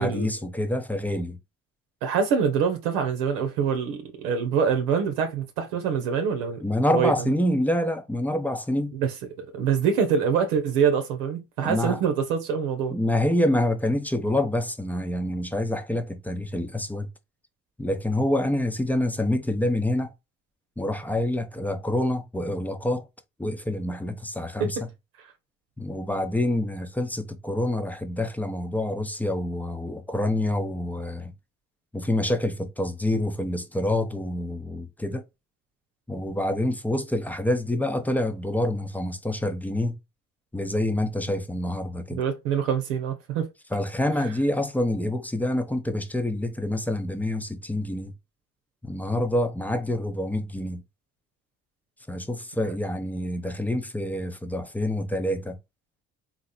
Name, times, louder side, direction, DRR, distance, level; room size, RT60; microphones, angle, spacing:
voice 1, 0.0-1.4 6.6-8.9 11.6-12.0 12.9-17.1 17.8-20.1 20.8-23.1 23.4-24.9 25.8-31.3 31.9-35.2 36.1-40.0 40.5-42.2 43.7-48.1 48.8-50.8 52.1-55.6, left 1 dB, 5° left, 0.8 m, -27 dB
voice 2, 2.0-6.6 6.9-7.1 8.9-9.1 9.4-13.0 24.6-24.7 42.2-43.5, right 7 dB, 70° right, 1.0 m, -25 dB
4.0 x 2.9 x 4.2 m
figure-of-eight pair, 50°, 38 cm